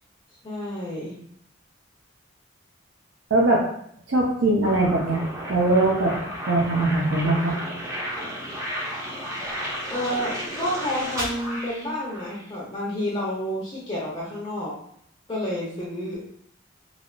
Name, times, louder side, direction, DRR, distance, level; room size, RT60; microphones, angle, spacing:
voice 1, 0.4-1.1 9.9-14.8 15.3-16.2, left 1 dB, 25° left, -6 dB, 0.6 m, -30 dB
voice 2, 3.3-3.6 4.1-5.2 5.5-6.1 6.4-7.5, right 2 dB, 75° right, -3 dB, 0.5 m, -21 dB
sound 1, 4.6-12.4, equal, 15° right, 0.5 m, -33 dB
3.3 x 2.4 x 2.4 m, 0.66 s
head